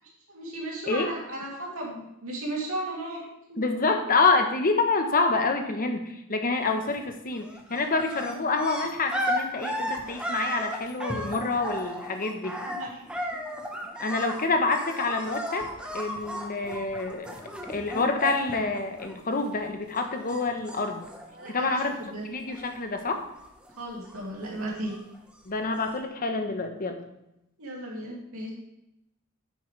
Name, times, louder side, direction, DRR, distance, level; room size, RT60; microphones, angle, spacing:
voice 1, 0.3-3.6 12.6-13.0 21.3-22.2 23.8-24.9 27.6-28.5, right 1 dB, 70° right, -3 dB, 2.7 m, -35 dB
voice 2, 3.6-6.0 6.3-12.6 14.0-15.7 15.9-17.3 17.7-21.0 21.5-22.0 22.2-23.2 25.5-27.0, left 3 dB, 40° left, 5 dB, 1.0 m, -27 dB
sound 1, 6.6-7.1 7.4-19.7 19.9-22.1 22.4-23.0 23.3-25.2 25.9-26.0, equal, 5° right, 1.1 m, -35 dB
9.7 x 7.7 x 3.3 m, 0.85 s
head